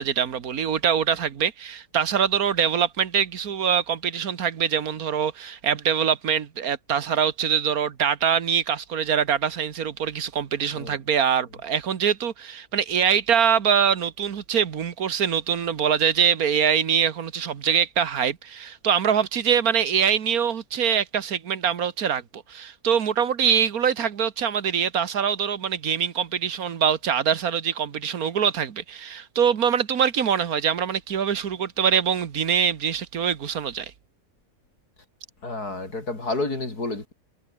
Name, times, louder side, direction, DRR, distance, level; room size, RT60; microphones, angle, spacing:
voice 1, 0.0-33.9, right 8 dB, 70° right, 1.8 m, -24 dB
voice 2, 35.4-37.1, left 2 dB, 75° left, 5.9 m, -30 dB
omnidirectional pair, 1.6 m